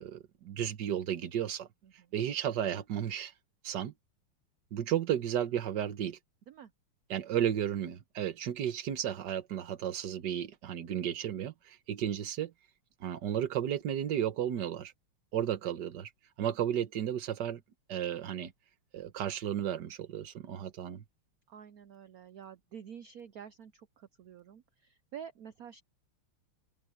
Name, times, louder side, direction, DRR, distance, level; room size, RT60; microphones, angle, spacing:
voice 1, 0.0-1.7 2.1-3.3 3.6-3.9 4.7-6.2 7.1-12.5 13.0-14.9 15.3-16.1 16.4-17.6 17.9-18.5 18.9-21.0, right 10 dB, 55° right, 1.6 m, -33 dB
voice 2, 1.8-2.1 6.5-6.7 15.6-15.7 21.5-25.8, right 8 dB, 85° right, 0.8 m, -49 dB
omnidirectional pair, 2.4 m